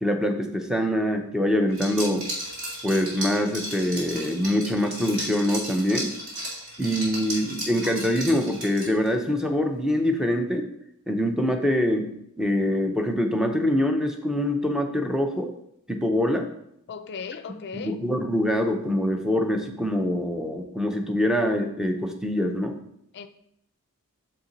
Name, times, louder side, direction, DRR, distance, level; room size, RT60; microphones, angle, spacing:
voice 1, 0.0-2.3 2.8-6.1 6.8-10.7 11.1-15.5 15.9-16.5 17.7-22.8, left 1 dB, 5° right, 0.6 m, -24 dB
Liquid, 1.7-9.1, right 1 dB, 70° right, 2.4 m, -34 dB
voice 2, 16.9-18.0 23.1-23.3, left 6 dB, 50° left, 0.4 m, -37 dB
6.5 x 4.3 x 3.9 m
head